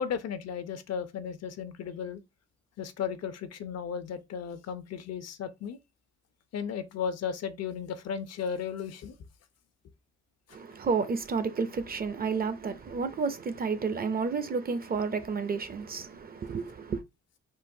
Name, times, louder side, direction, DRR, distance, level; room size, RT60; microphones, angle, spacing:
voice 1, 0.0-2.2 2.8-5.8 6.5-9.2, left 7 dB, 60° left, 0.5 m, -35 dB
voice 2, 10.5-17.0, right 5 dB, 30° right, 0.5 m, -31 dB
3.8 x 2.1 x 2.6 m
cardioid pair, 90°, 30 cm